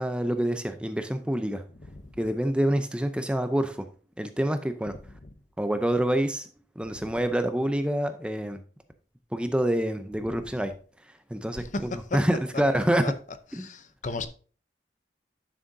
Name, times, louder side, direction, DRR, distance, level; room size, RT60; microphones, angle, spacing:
voice 1, 0.0-1.6 2.2-3.9 4.2-4.9 5.6-6.5 6.8-8.6 9.3-10.7 11.3-13.0 13.5-13.7, right 1 dB, 5° right, 0.5 m, -27 dB
voice 2, 11.6-12.2 13.0-13.1 13.5-14.3, left 3 dB, 45° left, 0.7 m, -35 dB
11.0 x 6.3 x 2.6 m
head